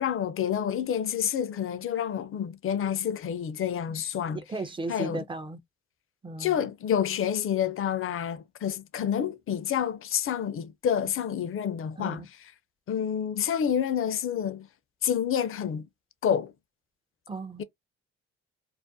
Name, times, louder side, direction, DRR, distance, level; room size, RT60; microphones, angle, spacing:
voice 1, 0.0-4.4 4.9-5.2 6.4-12.5 12.9-14.7 15.0-15.8 16.2-16.5 17.6-17.7, left 9 dB, 45° left, 0.5 m, -28 dB
voice 2, 4.5-5.6 6.2-6.5 12.0-12.3 17.3-17.6, right 2 dB, 15° right, 0.5 m, -35 dB
2.4 x 2.1 x 2.5 m
supercardioid pair, 60°, 30 cm